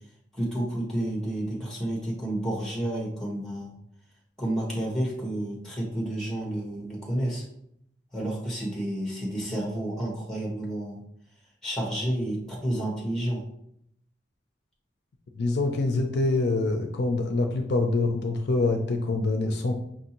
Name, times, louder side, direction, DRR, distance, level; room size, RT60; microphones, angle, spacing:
voice 1, 0.3-3.7 4.4-7.4 8.1-11.0 11.6-13.4, right 1 dB, 5° left, -2 dB, 1.0 m, -30 dB
voice 2, 15.4-19.8, left 2 dB, 55° left, 4 dB, 0.4 m, -25 dB
5.7 x 2.6 x 2.9 m, 0.75 s
head